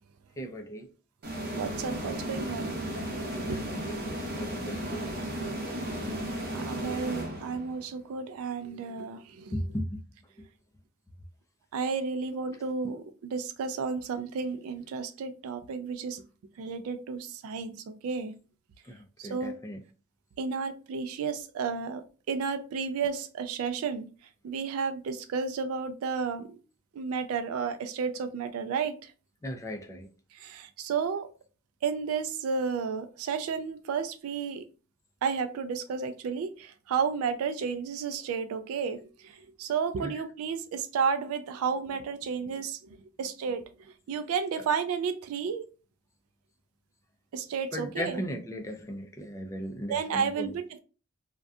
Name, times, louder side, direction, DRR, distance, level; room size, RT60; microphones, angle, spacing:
voice 1, 0.4-0.9 3.5-5.1 9.5-10.0 10.4-10.5 18.8-19.8 29.4-30.1 40.0-40.2 47.7-50.5, equal, 15° left, 0.3 m, -37 dB
sound 1, 1.2-7.8, right 1 dB, 45° right, 0.7 m, -35 dB
voice 2, 1.5-2.8 3.5-3.6 6.5-9.5 11.7-16.2 16.6-18.3 19.2-19.5 20.4-24.1 24.4-26.5 26.9-29.1 30.3-31.3 31.8-34.6 35.2-42.8 43.2-43.7 44.1-45.6 47.3-48.2 49.9-50.8, right 5 dB, 75° right, 0.3 m, -32 dB
2.6 x 2.2 x 2.3 m
head